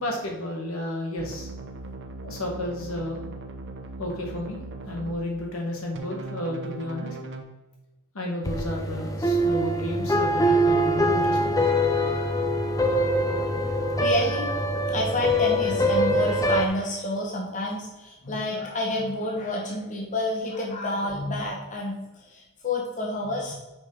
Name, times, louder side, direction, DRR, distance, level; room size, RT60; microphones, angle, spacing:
voice 1, 0.0-1.5 2.2-3.2 4.0-7.2 8.1-11.6 12.8-13.5, left 1 dB, 70° left, 0 dB, 1.5 m, -32 dB
sound 1, 1.2-5.2 5.9-7.4, right 2 dB, 55° right, 0.8 m, -39 dB
sound 2, 8.4-16.7, equal, 15° left, 0.5 m, -23 dB
voice 2, 14.0-14.5 14.9-23.5, left 1 dB, 35° left, -2 dB, 1.0 m, -29 dB
6.3 x 5.4 x 3.8 m, 1.1 s
head